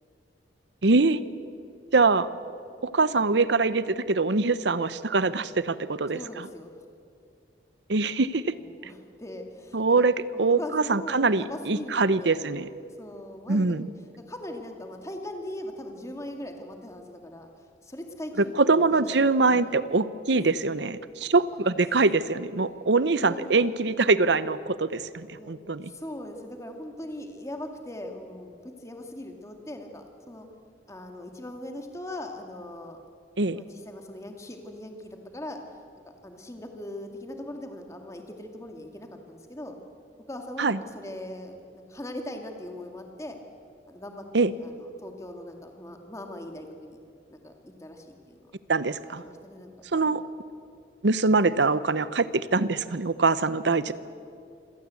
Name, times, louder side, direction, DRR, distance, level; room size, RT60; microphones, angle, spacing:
voice 1, 0.8-1.2 1.9-2.3 2.8-6.2 7.9-8.5 9.7-10.1 10.4-12.7 13.5-13.9 18.6-25.9 33.4-33.6 40.6-40.8 44.3-44.5 48.7-49.2 49.9-50.2 51.0-53.9, right 3 dB, 70° right, 15 dB, 0.8 m, -23 dB
voice 2, 6.1-6.8 8.5-10.0 10.3-12.4 13.0-13.8 14.2-19.0 19.6-19.7 20.3-20.5 21.8-22.1 23.1-23.9 25.3-25.5 25.9-30.5 30.9-33.0 33.5-35.6 36.2-39.8 40.3-43.4 43.9-47.0 47.3-48.5 49.2-50.1 53.8-53.9, left 1 dB, 15° left, 4 dB, 2.2 m, -40 dB
26.5 x 17.0 x 8.4 m, 2.4 s
head